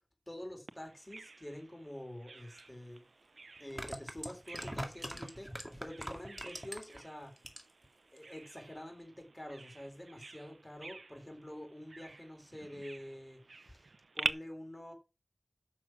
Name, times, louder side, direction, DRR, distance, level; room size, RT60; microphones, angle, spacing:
voice 1, 0.3-3.0 3.6-7.3 8.1-13.9 14.1-14.9, left 1 dB, 20° left, 4.3 m, -47 dB
Bird vocalization bird call bird song, 0.7-14.3, right 3 dB, 80° right, 0.6 m, -47 dB
sound 1, 2.6-2.7 3.6-7.0 7.4-7.9 8.2-8.3, equal, ahead, 2.2 m, -42 dB
9.6 x 6.2 x 6.1 m
wide cardioid pair, 70°, 0 cm